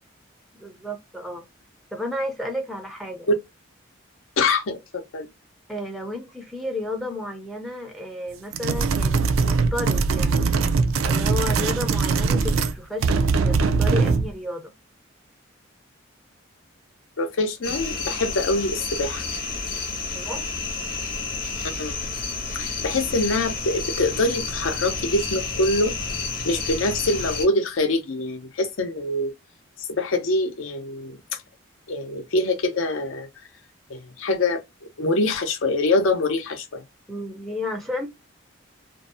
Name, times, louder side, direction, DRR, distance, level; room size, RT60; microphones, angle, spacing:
voice 1, 0.5-1.4 1.9-3.3 5.7-10.4 11.0-14.7 20.1-20.4 37.1-38.1, left 1 dB, ahead, 0.4 m, -32 dB
voice 2, 4.4-5.3 17.2-19.2 21.8-22.0 22.5-25.9 26.4-29.3 29.9-31.4 31.9-33.3 33.9-34.6 35.0-36.8, left 2 dB, 75° left, 0.6 m, -24 dB
sound 1, 8.5-12.8 13.0-14.3, right 4 dB, 80° right, 0.4 m, -21 dB
sound 2, 17.6-27.5, left 4 dB, 45° left, 0.8 m, -30 dB
2.6 x 2.0 x 2.6 m
head